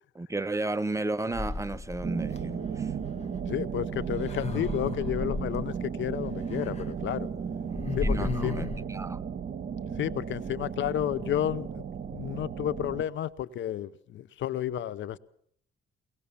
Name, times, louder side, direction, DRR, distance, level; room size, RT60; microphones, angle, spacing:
voice 1, 0.1-2.9 8.0-9.2, right 2 dB, 15° right, 0.8 m, -33 dB
sound 1, 1.3-2.4 3.9-5.7 6.5-6.8 7.1-7.2 7.6-8.8, left 3 dB, 35° left, 1.8 m, -34 dB
sound 2, 2.0-13.0, right 7 dB, 50° right, 1.8 m, -35 dB
voice 2, 3.5-7.3 7.9-8.6 10.0-11.8 12.1-15.2, left 11 dB, 70° left, 0.8 m, -31 dB
22.5 x 19.0 x 7.0 m
cardioid pair, 90°, 20 cm